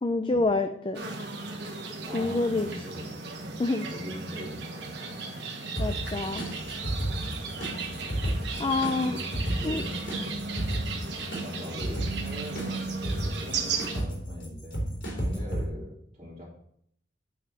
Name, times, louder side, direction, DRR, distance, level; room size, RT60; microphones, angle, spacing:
voice 1, 0.0-1.0 2.1-2.7 3.6-3.9 5.8-6.4 8.6-9.2 9.6-9.8, left 3 dB, 25° left, 7 dB, 0.4 m, -27 dB
sound 1, 0.9-14.0, right 4 dB, 60° right, 1.3 m, -36 dB
voice 2, 2.0-3.5 3.9-5.3 7.2-8.1 8.5-10.3 11.3-16.6, equal, 25° right, -11 dB, 3.3 m, -42 dB
sound 2, 5.7-15.6, right 1 dB, 75° left, 3.1 m, -33 dB
8.7 x 4.7 x 6.3 m, 0.70 s
head